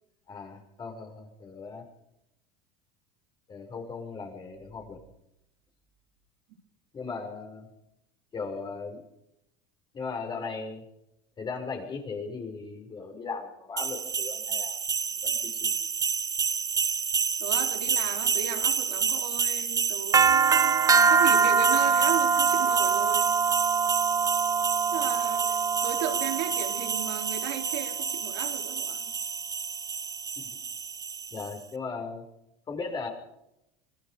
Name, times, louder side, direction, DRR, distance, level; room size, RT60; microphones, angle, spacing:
voice 1, 0.3-1.8 3.5-5.0 6.9-7.7 8.3-9.0 9.9-10.8 11.4-14.8 15.2-15.7 31.3-32.2 32.7-33.1, left 4 dB, 30° left, 3 dB, 6.2 m, -37 dB
sound 1, 13.8-31.5, right 6 dB, 25° right, 0.9 m, -25 dB
voice 2, 17.4-23.4 24.9-29.0, right 10 dB, 75° right, 4 dB, 4.3 m, -36 dB
25.5 x 20.0 x 5.3 m, 0.84 s
supercardioid pair, 115°, 15 cm